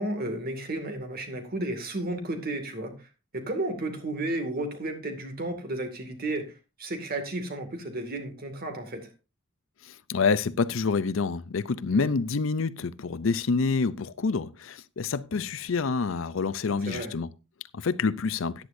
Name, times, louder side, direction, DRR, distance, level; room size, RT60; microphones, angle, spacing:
voice 1, 0.0-3.1 3.3-6.5 6.8-9.1 11.9-12.2 16.8-17.1, right 1 dB, 50° right, 2.2 m, -33 dB
voice 2, 10.1-17.3 17.7-18.5, left 4 dB, 70° left, 0.6 m, -27 dB
14.0 x 10.0 x 2.6 m
head